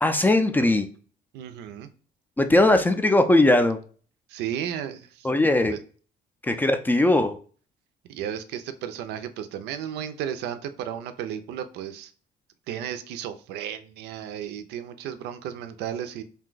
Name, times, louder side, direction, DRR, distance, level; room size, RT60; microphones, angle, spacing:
voice 1, 0.0-0.9 2.4-3.8 5.2-5.7 6.4-7.4, left 2 dB, 10° left, 8 dB, 0.3 m, -19 dB
voice 2, 1.3-1.9 4.3-5.3 5.7-5.8 8.1-12.1 12.7-16.2, right 9 dB, 80° right, 9 dB, 0.4 m, -34 dB
2.7 x 2.2 x 3.8 m, 0.41 s
cardioid pair, 110°, 17 cm